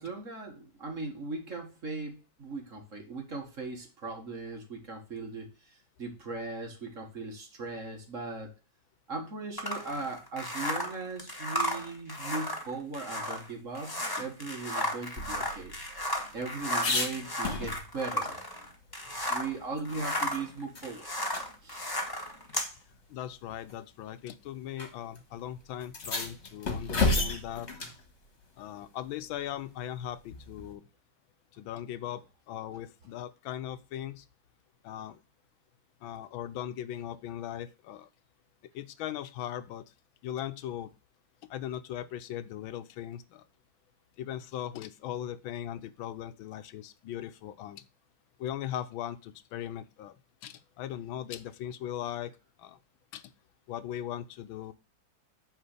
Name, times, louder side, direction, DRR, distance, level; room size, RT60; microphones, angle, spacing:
voice 1, 0.0-8.5 9.1-15.8 16.3-18.4 19.3-21.1 21.6-22.0, right 3 dB, 40° right, 3 dB, 1.9 m, -38 dB
sound 1, 9.6-19.6 19.8-22.7, equal, 15° left, 1.3 m, -34 dB
Old squeaky door in basement boiler room, 15.2-18.2 18.5-18.6 19.0-20.4 20.8-20.9 21.3-21.5 22.5-22.6 23.5-23.8 24.8-24.9 25.2-25.3 25.8-28.0 30.3-30.7, left 3 dB, 35° left, 1.7 m, -33 dB
voice 2, 23.1-27.7 28.6-30.8 31.5-34.3 34.8-35.2 36.0-38.1 38.7-39.8 40.2-40.9 41.4-43.4 44.2-47.8 48.4-50.1 50.4-52.3 52.6-52.8 53.1-53.2 53.7-54.7, left 11 dB, 85° left, 13 dB, 1.5 m, -39 dB
8.9 x 3.7 x 6.6 m, 0.31 s
omnidirectional pair, 2.1 m